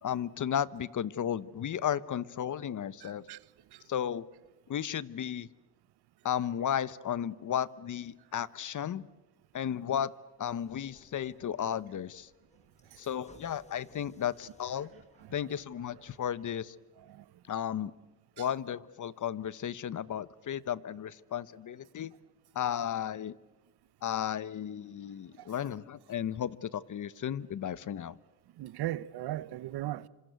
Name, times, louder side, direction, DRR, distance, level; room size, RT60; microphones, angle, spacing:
voice 1, 0.0-3.2 3.9-4.3 4.7-5.5 6.2-9.1 9.5-10.1 10.4-12.3 13.0-14.9 15.3-16.7 17.5-17.9 18.4-22.1 22.5-23.3 24.0-28.2, left 9 dB, 50° left, 1.0 m, -34 dB
voice 2, 3.0-3.4 3.7-3.8 17.1-17.2 18.4-18.5 25.4-25.5 28.6-30.1, right 14 dB, 70° right, 1.0 m, -37 dB
sound 1, 10.5-16.6, left 2 dB, 15° left, 3.9 m, -62 dB
26.5 x 26.0 x 8.2 m
cardioid pair, 85°, 40 cm